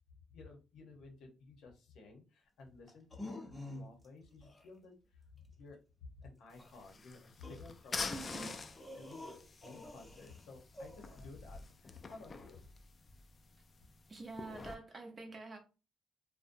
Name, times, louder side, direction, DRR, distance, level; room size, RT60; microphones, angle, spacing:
voice 1, 0.3-8.5 8.9-12.6, left 3 dB, 80° left, 0.7 m, -55 dB
sound 1, 2.9-4.1 4.4-4.7 6.6-6.7 7.4-10.4 10.7-11.3, left 1 dB, 15° left, 0.7 m, -48 dB
sound 2, 6.5-14.8, left 4 dB, 35° left, 0.3 m, -47 dB
voice 2, 8.1-8.5 14.1-15.6, right 3 dB, 35° right, 0.6 m, -46 dB
2.6 x 2.1 x 2.5 m
cardioid pair, 90°, 0 cm